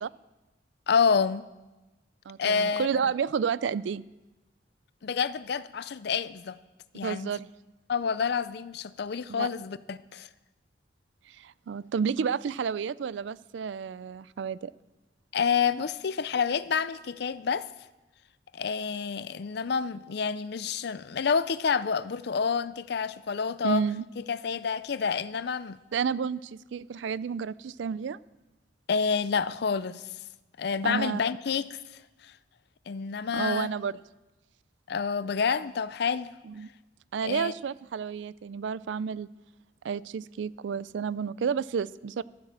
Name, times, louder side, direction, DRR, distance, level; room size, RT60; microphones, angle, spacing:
voice 1, 0.9-1.5 2.4-2.9 5.0-6.6 6.9-7.3 7.9-10.3 15.3-17.7 18.5-23.8 24.2-25.8 28.9-30.1 30.6-31.8 32.2-32.3 32.9-33.7 34.9-36.3 37.2-37.5, left 6 dB, 60° left, 0.5 m, -28 dB
voice 2, 2.3-4.0 7.0-7.5 9.3-9.5 11.3-14.7 23.6-24.0 25.9-28.2 30.8-31.2 33.3-33.9 36.4-36.7 37.1-39.3 39.8-42.2, right 6 dB, 75° right, 0.4 m, -31 dB
12.5 x 8.1 x 7.5 m
head